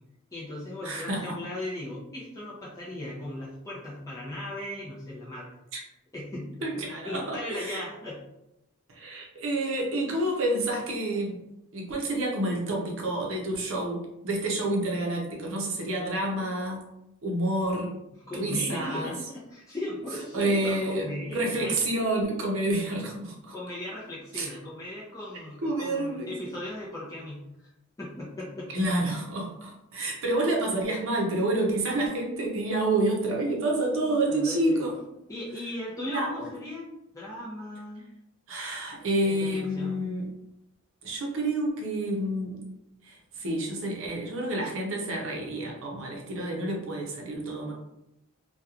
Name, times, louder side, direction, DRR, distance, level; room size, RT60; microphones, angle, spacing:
voice 1, 0.3-5.5 6.1-8.2 18.3-21.8 23.5-27.4 28.0-28.7 34.1-34.9 35.3-36.9 37.1-38.0 39.2-40.0, left 1 dB, 15° left, -7 dB, 0.5 m, -37 dB
voice 2, 0.8-1.4 5.7-5.8 6.6-7.8 8.9-11.4 11.7-16.8 17.2-17.9 18.3-19.1 20.3-21.1 21.3-23.5 24.3-24.5 25.6-26.3 28.7-34.9 36.0-36.5 38.5-40.3 41.0-42.6 43.1-47.7, right 1 dB, 65° right, -1 dB, 0.6 m, -29 dB
2.9 x 2.2 x 2.3 m, 0.87 s
head